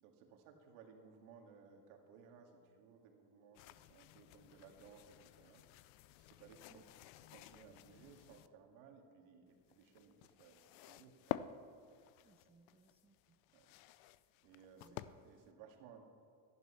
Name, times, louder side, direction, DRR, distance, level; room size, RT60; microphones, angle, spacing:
voice 1, 0.0-5.6 6.3-6.8 7.3-11.2 13.5-13.7 14.4-16.1, right 6 dB, 85° right, 3 dB, 2.1 m, -61 dB
sound 1, 3.5-8.5 9.5-15.5, left 14 dB, 70° left, 0.6 m, -51 dB
voice 2, 6.5-6.8 12.2-13.4 14.7-15.2, right 4 dB, 15° right, 5 dB, 0.7 m, -68 dB
14.0 x 11.0 x 5.7 m, 2.5 s
supercardioid pair, 120°, 47 cm